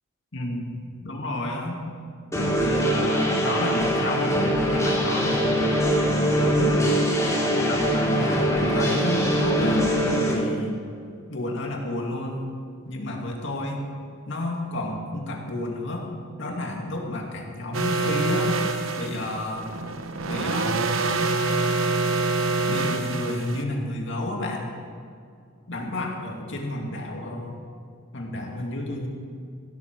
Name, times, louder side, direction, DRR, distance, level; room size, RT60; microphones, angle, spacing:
voice 1, 0.3-1.8 2.6-5.7 6.2-6.8 7.7-9.9 10.3-10.8 11.3-12.5 12.9-13.9 14.3-16.1 16.4-18.5 19.0-19.7 20.3-20.9 22.7-24.7 25.7-27.6 28.1-29.1, left 1 dB, 60° left, 0 dB, 2.3 m, -31 dB
sound 1, 2.3-10.3, equal, 15° left, 3.6 m, -22 dB
sound 2, 17.7-23.6, right 3 dB, 75° right, 1.0 m, -26 dB
16.0 x 12.5 x 4.7 m, 2.4 s
head